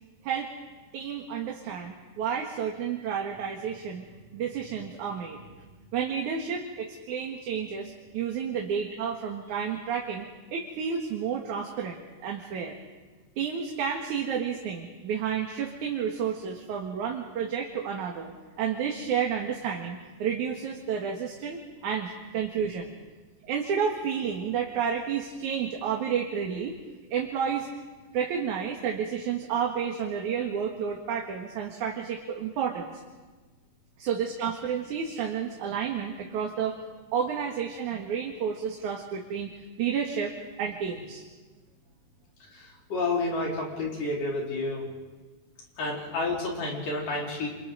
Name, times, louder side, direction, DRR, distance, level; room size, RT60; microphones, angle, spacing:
voice 1, 0.9-5.4 5.9-12.8 13.4-22.9 23.4-26.8 27.1-27.7 28.1-32.9 34.0-36.8 37.1-40.3 40.6-41.2, right 7 dB, 70° right, 0 dB, 3.0 m, -31 dB
voice 2, 42.5-44.9 45.8-47.5, left 2 dB, 80° left, -3 dB, 6.1 m, -30 dB
29.5 x 28.0 x 4.0 m, 1.3 s
omnidirectional pair, 3.7 m